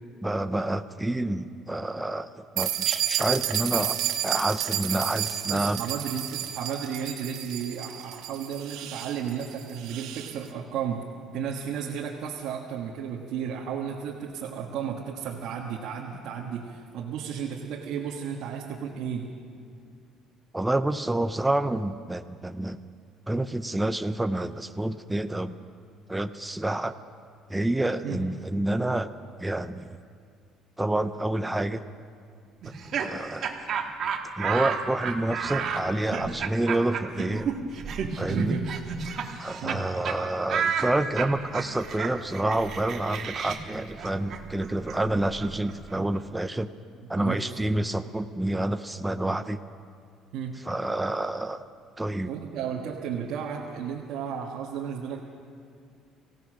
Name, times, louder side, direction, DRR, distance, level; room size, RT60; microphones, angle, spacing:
voice 1, 0.2-5.8 20.5-22.8 23.3-25.5 26.1-26.9 27.5-29.1 29.4-29.9 30.8-31.8 33.0-33.6 34.4-37.5 38.2-38.6 39.4-46.7 47.1-49.6 50.7-51.7 52.0-52.3, right 1 dB, 5° right, 10 dB, 0.4 m, -28 dB
sound 1, 2.6-10.3, right 11 dB, 80° right, 1.3 m, -31 dB
voice 2, 5.5-11.1 11.3-19.3 28.0-28.2 38.1-38.7 39.6-39.9 47.2-47.6 50.3-50.6 52.2-55.2, right 7 dB, 60° right, -2 dB, 1.6 m, -33 dB
Laughter, 32.6-39.8 40.0-40.2 40.5-46.2, right 6 dB, 40° right, 1.4 m, -32 dB
24.5 x 16.5 x 6.3 m, 2.2 s
cardioid pair, 175°, 0 cm